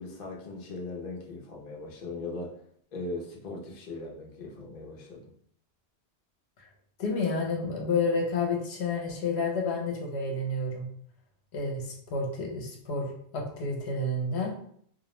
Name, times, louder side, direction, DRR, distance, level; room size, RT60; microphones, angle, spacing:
voice 1, 0.0-2.6 2.9-5.3, left 2 dB, 50° left, -1 dB, 0.6 m, -39 dB
voice 2, 7.0-10.9 11.5-14.5, left 3 dB, 75° left, 0 dB, 0.8 m, -30 dB
2.3 x 2.0 x 2.9 m, 0.63 s
omnidirectional pair, 1.1 m